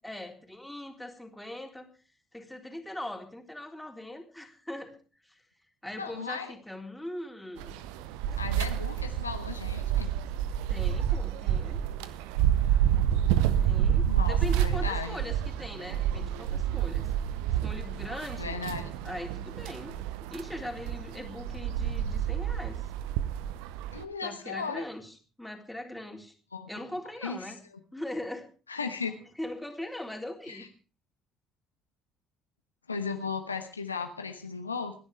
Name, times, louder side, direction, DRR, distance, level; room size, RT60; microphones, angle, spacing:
voice 1, 0.0-1.9 2.3-4.9 5.2-5.4 5.8-7.8 10.7-11.8 13.6-17.1 17.6-18.6 19.0-20.0 20.3-22.9 24.2-26.4 26.7-27.6 27.9-28.5 29.4-30.7, left 1 dB, 5° left, 2 dB, 3.7 m, -40 dB
voice 2, 6.0-6.5 8.4-10.1 14.0-15.2 18.3-18.9 23.9-24.8 26.5-26.8 27.2-27.5 28.7-29.1 30.5-30.7 32.9-34.9, left 5 dB, 85° left, 6 dB, 1.1 m, -36 dB
sound 1, 7.6-24.0, right 10 dB, 65° right, 0.8 m, -29 dB
26.5 x 11.0 x 3.4 m, 0.36 s
figure-of-eight pair, 55°, 0 cm